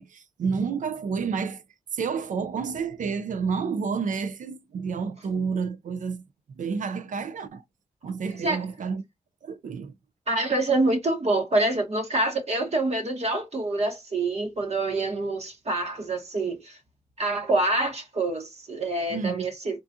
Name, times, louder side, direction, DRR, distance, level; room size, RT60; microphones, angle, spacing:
voice 1, 0.0-1.6 1.9-6.2 6.6-7.6 8.0-9.0 9.4-9.9 19.1-19.5, right 5 dB, 80° right, 0.5 m, -30 dB
voice 2, 10.3-16.8 17.2-19.8, right 2 dB, 55° right, 1.1 m, -26 dB
3.8 x 2.3 x 2.6 m
cardioid pair, 50°, 13 cm